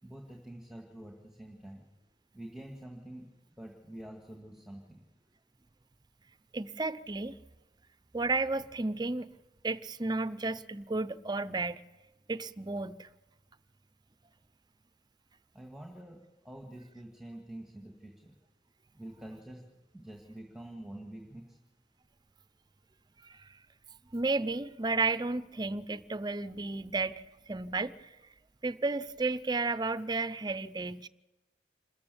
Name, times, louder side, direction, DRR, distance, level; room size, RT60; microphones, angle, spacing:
voice 1, 0.0-1.8 2.3-3.3 3.6-5.0 15.5-16.2 16.4-18.4 18.9-19.6 19.9-21.6, right 1 dB, ahead, 2.0 m, -47 dB
voice 2, 6.5-7.4 8.1-9.3 9.6-11.8 12.3-13.1 23.2-23.5 24.1-28.0 28.6-31.1, right 3 dB, 25° right, 0.6 m, -32 dB
27.0 x 14.0 x 7.0 m
head